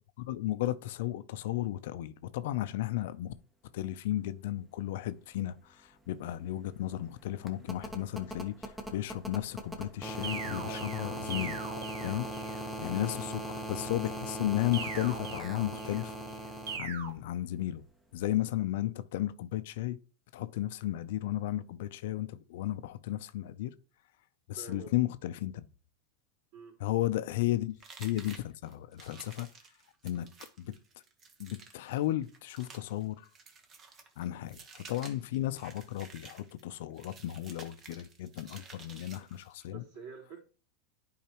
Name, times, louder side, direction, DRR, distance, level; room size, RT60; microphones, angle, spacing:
voice 1, 0.2-3.3 3.7-11.6 12.0-16.1 16.8-17.8 18.1-20.0 20.3-23.7 24.5-25.7 26.8-29.5 30.0-30.3 30.6-30.7 31.4-33.3 34.2-39.8, left 14 dB, 70° left, 0.5 m, -34 dB
sound 1, 5.6-5.7 5.9-16.8 18.2-18.3, right 1 dB, 5° right, 1.0 m, -40 dB
sound 2, 10.2-12.6 14.7-16.1 16.7-17.1, right 5 dB, 90° right, 1.4 m, -41 dB
voice 2, 24.6-24.9 26.5-26.8 39.7-40.4, right 5 dB, 65° right, 3.7 m, -47 dB
sound 3, 27.8-39.7, right 4 dB, 30° right, 1.2 m, -53 dB
10.5 x 4.7 x 3.0 m
supercardioid pair, 135°, 0 cm